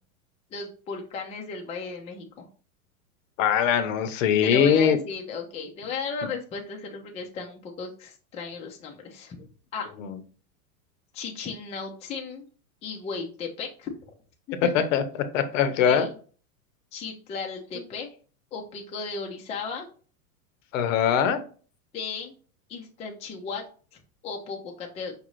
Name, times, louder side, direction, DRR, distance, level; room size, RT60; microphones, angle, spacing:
voice 1, 0.5-2.4 4.4-9.4 9.7-9.9 11.1-12.5 12.8-14.1 14.5-14.9 15.7-16.1 16.9-18.1 18.5-19.9 21.9-22.3 22.7-23.6 23.9-25.1, left 4 dB, 15° left, 1 dB, 0.5 m, -35 dB
voice 2, 3.4-5.0 10.0-10.1 14.7-15.0 15.3-16.1 20.7-21.4, left 8 dB, 60° left, 10 dB, 0.8 m, -21 dB
5.3 x 2.6 x 3.1 m, 0.40 s
hypercardioid pair, 125°, 44 cm